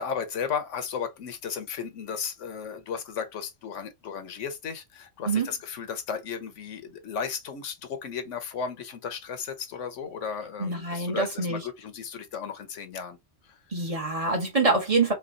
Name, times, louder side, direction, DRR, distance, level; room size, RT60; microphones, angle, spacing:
voice 1, 0.0-13.2 13.4-13.6, left 6 dB, 75° left, 1.1 m, -34 dB
voice 2, 10.6-11.6 13.7-15.1, right 3 dB, 30° right, 1.0 m, -25 dB
4.3 x 2.3 x 2.5 m
omnidirectional pair, 1.3 m